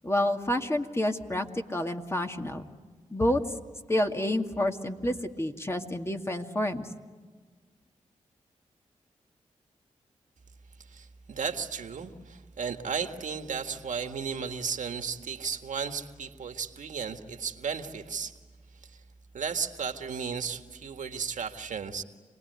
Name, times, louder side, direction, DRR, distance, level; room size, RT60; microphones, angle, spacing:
voice 1, 0.0-2.7 3.1-3.4 3.9-6.9, left 1 dB, 20° left, 4 dB, 2.2 m, -29 dB
voice 2, 10.8-18.3 18.8-19.0 19.3-22.0, right 6 dB, 75° right, 6 dB, 1.8 m, -34 dB
28.0 x 19.5 x 9.5 m, 1.4 s
cardioid pair, 50°, 13 cm